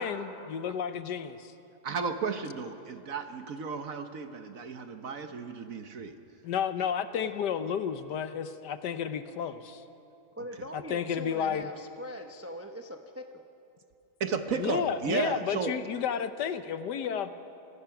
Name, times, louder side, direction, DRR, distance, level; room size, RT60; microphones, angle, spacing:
voice 1, 0.0-1.5 6.4-9.8 10.7-11.7 14.6-17.3, left 8 dB, 75° left, 11 dB, 1.4 m, -32 dB
voice 2, 1.8-6.1 14.2-15.8, right 5 dB, 55° right, 8 dB, 1.3 m, -33 dB
voice 3, 10.4-13.4, equal, 20° right, 4 dB, 0.4 m, -41 dB
26.5 x 18.0 x 5.9 m, 2.7 s
omnidirectional pair, 1.9 m